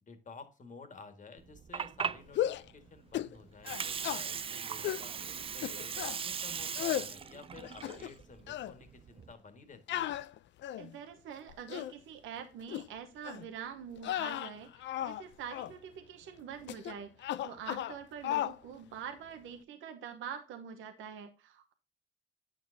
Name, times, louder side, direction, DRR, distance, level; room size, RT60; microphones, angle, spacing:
voice 1, 0.0-5.1 5.5-10.1, left 4 dB, 40° left, 8 dB, 1.7 m, -52 dB
Water, 1.4-9.3, right 7 dB, 30° right, 0.3 m, -39 dB
sound 1, 2.3-2.7 3.1-3.4 3.6-4.2 4.8-5.1 5.6-6.2 6.7-7.1 7.6-8.2 8.5-8.7 9.9-10.9 11.5-11.9 12.7-12.9 13.2-13.5 14.0-15.2 15.5-15.7 16.7-16.9 17.2-18.0 18.2-18.6, left 12 dB, 65° left, 0.4 m, -35 dB
voice 2, 10.8-21.7, right 8 dB, 85° right, 7 dB, 0.9 m, -45 dB
8.9 x 6.5 x 2.6 m, 0.33 s
cardioid pair, 90°, 20 cm